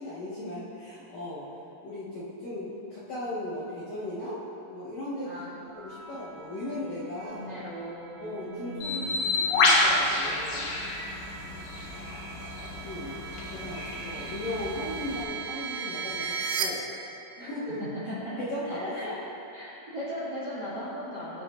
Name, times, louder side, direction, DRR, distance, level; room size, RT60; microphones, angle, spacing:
voice 1, 0.0-1.4 1.8-4.4 4.7-5.4 5.7-7.5 8.2-10.7 12.8-13.2 13.5-16.8 17.4-17.9 18.4-19.2, left 1 dB, 50° left, -11 dB, 2.3 m, -37 dB
sound 1, 5.7-16.6, right 6 dB, 80° right, 2.7 m, -39 dB
voice 2, 7.3-9.3 17.4-17.5 18.1-19.1 19.5-21.4, equal, 30° right, -9 dB, 2.1 m, -38 dB
Bird, 8.8-15.2, left 2 dB, 70° left, 3.4 m, -29 dB
20.5 x 7.9 x 2.7 m, 2.9 s
omnidirectional pair, 5.3 m